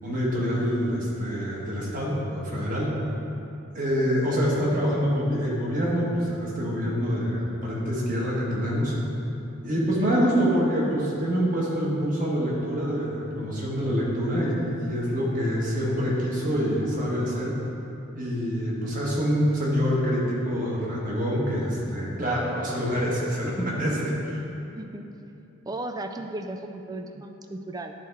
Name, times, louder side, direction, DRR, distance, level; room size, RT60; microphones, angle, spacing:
voice 1, 0.0-2.9 3.7-8.9 9.6-17.5 18.1-24.4, equal, 40° right, -5 dB, 1.4 m, -26 dB
voice 2, 24.7-25.1 25.7-27.9, right 2 dB, 15° right, 5 dB, 0.3 m, -35 dB
10.5 x 4.3 x 3.5 m, 2.8 s
head